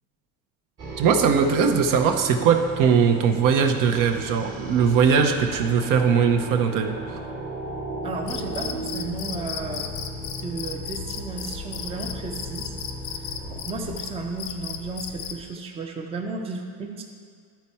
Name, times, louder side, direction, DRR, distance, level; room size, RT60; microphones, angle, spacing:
sound 1, 0.8-14.9, right 2 dB, 30° right, 1.3 m, -36 dB
voice 1, 1.0-7.0, right 6 dB, 50° right, 5 dB, 0.7 m, -20 dB
voice 2, 8.0-9.9 10.4-12.7 13.1-13.2 13.7-17.0, right 3 dB, 15° right, 2 dB, 0.6 m, -33 dB
Cricket, 8.2-15.4, left 8 dB, 65° left, 0.8 m, -35 dB
11.5 x 4.5 x 4.2 m, 2.2 s
cardioid pair, 130°, 41 cm